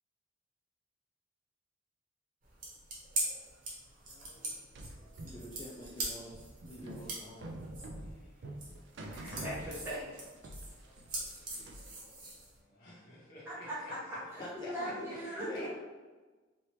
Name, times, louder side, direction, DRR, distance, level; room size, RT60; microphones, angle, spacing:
sound 1, 2.4-12.6, right 2 dB, 45° right, 0.9 m, -42 dB
voice 1, 4.0-4.5 4.8-5.6 8.0-8.6 10.6-13.9 14.8-15.7, equal, 50° left, 0.9 m, -54 dB
sound 2, 4.7-10.2 10.4-12.0, right 1 dB, 65° right, 0.4 m, -46 dB
voice 2, 5.2-7.6 14.4-15.1 15.4-15.7, left 1 dB, 25° left, 0.3 m, -46 dB
voice 3, 9.0-10.2 13.5-14.0 14.3-15.7, equal, 10° right, 0.7 m, -40 dB
3.3 x 2.7 x 3.0 m
head